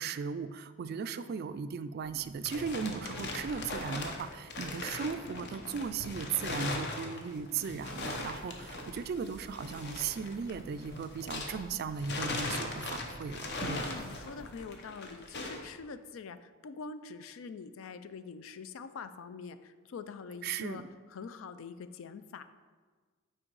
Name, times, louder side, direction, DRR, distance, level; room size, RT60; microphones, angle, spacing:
voice 1, 0.0-13.8 20.4-20.8, right 6 dB, 50° right, 12 dB, 0.3 m, -37 dB
voice 2, 0.8-1.3 13.6-22.4, left 5 dB, 70° left, 12 dB, 0.4 m, -45 dB
sound 1, 2.0-11.7 12.0-15.7, left 2 dB, 55° left, 0.8 m, -39 dB
sound 2, 7.9-14.7, right 1 dB, 15° right, 0.7 m, -54 dB
6.3 x 4.4 x 4.7 m, 1.5 s
head